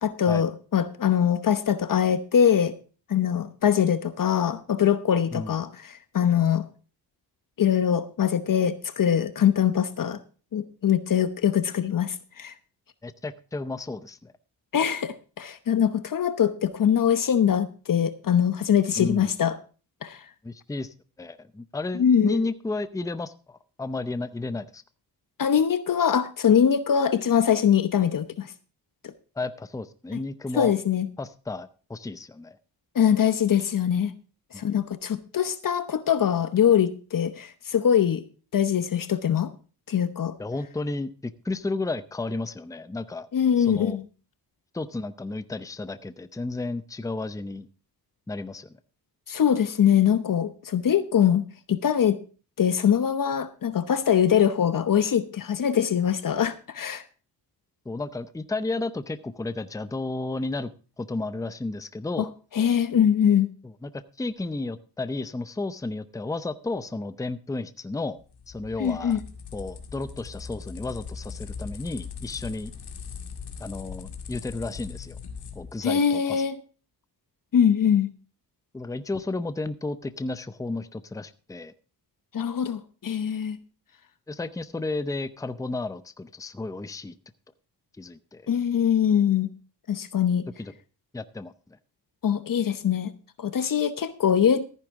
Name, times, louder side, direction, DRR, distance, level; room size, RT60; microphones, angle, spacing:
voice 1, 0.0-2.7 3.1-6.6 7.6-10.2 10.5-12.5 14.7-19.5 20.0-20.2 22.0-22.4 25.4-28.5 30.1-30.2 30.5-31.1 32.9-34.1 34.5-38.2 38.5-39.5 39.9-40.3 43.3-44.0 49.3-52.2 52.6-57.0 62.2-62.3 62.5-63.5 68.8-69.2 75.8-76.6 77.5-78.1 82.3-83.6 88.5-89.5 89.9-90.4 92.2-93.1 93.4-94.6, left 8 dB, 55° left, 12 dB, 0.9 m, -23 dB
voice 2, 13.0-14.3 19.0-19.3 20.4-24.8 29.4-30.7 31.2-32.6 34.5-34.7 40.4-43.3 43.6-44.0 44.7-47.7 48.3-48.7 57.9-60.7 61.0-62.3 63.6-68.2 68.5-69.2 69.5-72.7 73.6-75.2 75.6-76.4 78.7-81.7 84.3-87.2 88.0-88.5 90.6-90.7 91.1-91.8, left 2 dB, 10° left, 13 dB, 0.6 m, -33 dB
sound 1, 68.2-75.8, left 6 dB, 75° left, 2.2 m, -40 dB
14.0 x 10.0 x 3.6 m, 0.36 s
cardioid pair, 90°, 40 cm